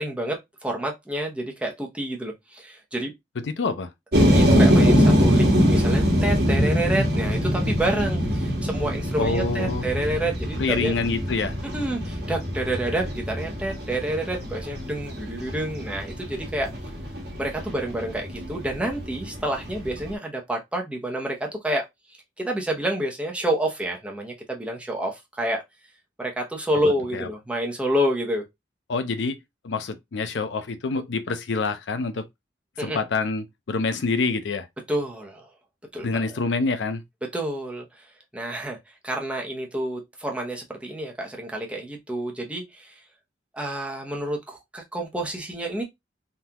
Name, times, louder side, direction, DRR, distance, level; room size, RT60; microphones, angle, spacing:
voice 1, 0.0-3.1 4.2-10.9 11.7-16.7 17.4-21.9 22.4-25.6 26.2-28.4 32.8-33.0 34.9-35.5 35.9-36.3 37.3-37.8 38.3-38.8 39.0-43.0 43.5-45.8, right 1 dB, 5° right, 0.8 m, -28 dB
voice 2, 3.4-3.9 9.2-9.9 10.6-11.5 27.1-27.3 28.9-29.4 29.6-32.3 32.8-34.7 36.0-37.0, left 4 dB, 80° left, 0.5 m, -26 dB
sound 1, 4.1-20.1, equal, 65° right, 1.2 m, -23 dB
3.7 x 2.4 x 2.8 m
head